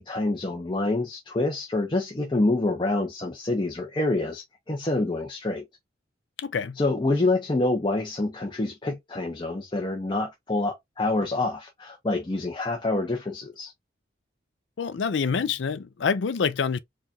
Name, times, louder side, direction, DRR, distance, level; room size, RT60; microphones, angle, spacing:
voice 1, 0.0-5.6 6.8-13.7, left 2 dB, 25° left, 0.7 m, -27 dB
voice 2, 6.4-6.8 14.8-16.8, left 5 dB, 75° left, 0.5 m, -26 dB
4.7 x 2.4 x 2.8 m
head